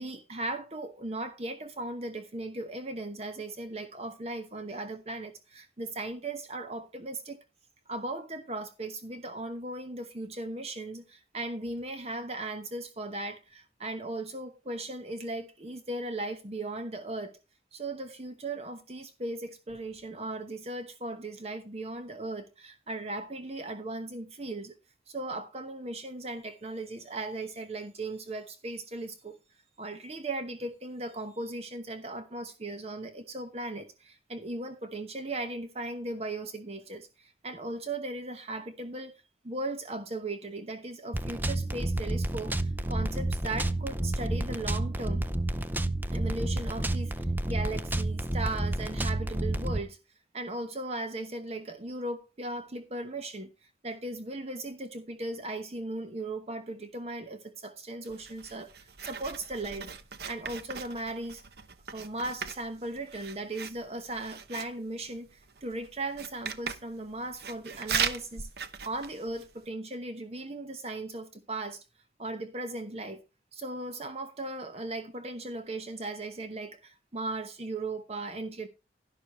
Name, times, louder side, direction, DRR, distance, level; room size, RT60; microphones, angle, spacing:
voice 1, 0.0-7.4 7.9-17.4 17.7-24.8 25.1-29.4 29.8-45.3 46.1-47.1 47.5-50.0 50.3-59.9 60.3-61.4 61.9-68.5 68.8-71.8 72.2-73.2 73.5-78.7, right 2 dB, 35° right, 1.0 m, -37 dB
sound 1, 41.1-49.8, right 1 dB, 10° right, 0.5 m, -30 dB
Writing, 58.0-69.7, right 6 dB, 60° right, 1.0 m, -39 dB
11.5 x 11.5 x 3.0 m
head